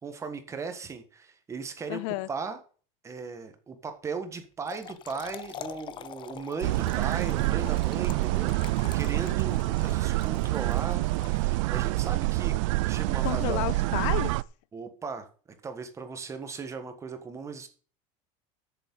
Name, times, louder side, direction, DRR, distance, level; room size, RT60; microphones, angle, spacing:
voice 1, 0.0-2.6 3.0-12.5 12.9-13.6 14.7-15.3 15.6-17.7, right 5 dB, 20° right, 1.5 m, -37 dB
voice 2, 1.9-2.3 13.2-14.4, left 19 dB, 70° left, 0.5 m, -31 dB
Trickle dribble / Fill (with liquid), 4.4-11.9, left 10 dB, 30° left, 0.6 m, -45 dB
sound 1, 6.6-14.4, right 20 dB, 80° right, 0.4 m, -27 dB
7.8 x 7.2 x 8.4 m
cardioid pair, 155°, 16 cm